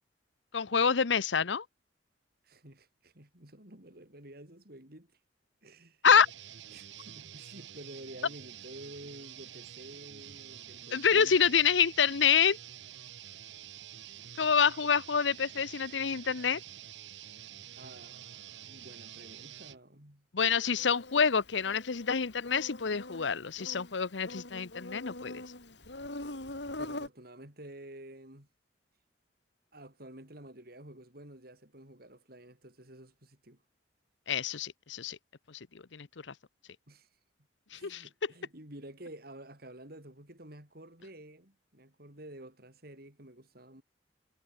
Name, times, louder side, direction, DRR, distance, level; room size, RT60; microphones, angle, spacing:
voice 1, 0.5-1.6 6.0-6.3 10.9-12.6 14.4-16.6 20.3-25.4 34.3-35.2 35.5-35.6 35.9-36.3 37.7-38.0, left 6 dB, 90° left, 0.8 m, -27 dB
voice 2, 2.4-5.1 5.6-6.1 6.7-11.6 13.9-14.4 17.8-20.3 26.8-28.5 29.7-33.6 36.9-37.1 37.7-43.8, right 1 dB, 55° right, 5.9 m, -50 dB
sound 1, 6.1-19.8, right 11 dB, 85° right, 1.0 m, -48 dB
Insect, 20.8-27.1, left 2 dB, 75° left, 3.9 m, -43 dB
head